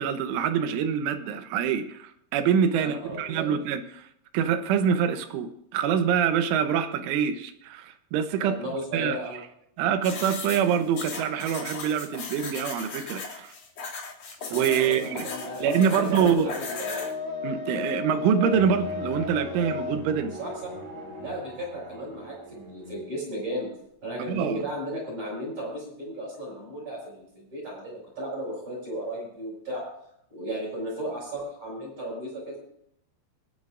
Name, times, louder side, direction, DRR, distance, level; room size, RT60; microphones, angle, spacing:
voice 1, 0.0-4.1 4.3-8.5 8.9-9.2 9.8-13.6 14.5-15.3 15.6-16.6 17.4-20.4 24.3-24.6, right 8 dB, 90° right, 8 dB, 3.4 m, -25 dB
voice 2, 2.7-3.5 8.3-9.4 14.8-17.1 20.4-20.5 21.2-23.7 24.0-29.8 30.3-32.6, right 1 dB, 35° right, -5 dB, 7.1 m, -35 dB
sound 1, 10.0-17.1, left 4 dB, 45° left, 3.5 m, -37 dB
sound 2, 14.4-21.3, left 5 dB, 75° left, 4.3 m, -36 dB
Bowed string instrument, 18.5-23.3, right 1 dB, 70° right, 6.9 m, -44 dB
27.5 x 9.5 x 2.5 m, 0.73 s
omnidirectional pair, 5.4 m